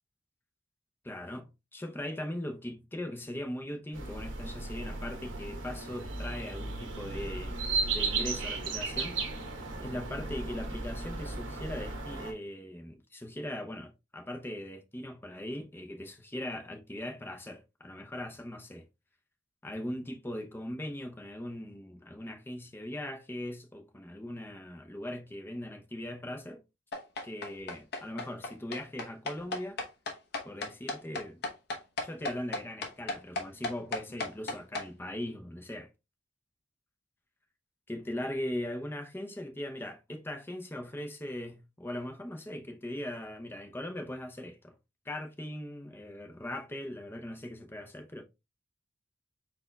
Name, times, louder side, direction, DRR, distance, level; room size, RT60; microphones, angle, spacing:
voice 1, 1.0-7.6 7.9-9.2 9.8-18.8 19.6-26.6 27.2-29.8 30.4-31.4 32.0-35.9 37.9-44.7 45.1-48.2, left 1 dB, 10° left, 0.6 m, -40 dB
sound 1, 3.9-12.3, right 4 dB, 90° right, 1.2 m, -35 dB
sound 2, 26.9-34.9, left 2 dB, 60° left, 0.9 m, -35 dB
4.3 x 4.2 x 2.3 m
head